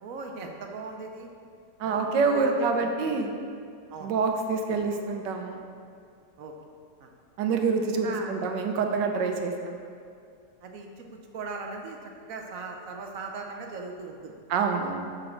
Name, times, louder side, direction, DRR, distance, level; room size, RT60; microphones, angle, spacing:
voice 1, 0.0-1.3 1.8-2.0 2.4-2.9 3.9-4.1 6.4-6.5 7.0-7.1 8.0-8.3 10.6-12.0 12.3-14.3, right 4 dB, 60° right, 2 dB, 1.0 m, -39 dB
voice 2, 1.8-3.4 4.0-5.6 7.4-9.7 14.5-15.1, right 4 dB, 90° right, 4 dB, 1.4 m, -26 dB
6.5 x 6.3 x 4.4 m, 2.4 s
omnidirectional pair, 1.9 m